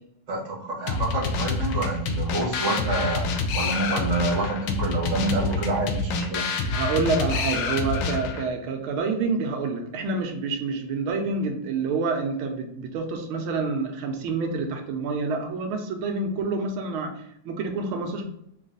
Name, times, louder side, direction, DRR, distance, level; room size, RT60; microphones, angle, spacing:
voice 1, 0.3-6.5, right 2 dB, 30° right, -3 dB, 0.8 m, -28 dB
sound 1, 0.9-8.5, left 4 dB, 75° left, 1.2 m, -27 dB
voice 2, 6.7-17.1 17.4-18.2, right 4 dB, 85° right, 3 dB, 1.5 m, -27 dB
3.9 x 2.4 x 3.7 m, 0.75 s
omnidirectional pair, 2.3 m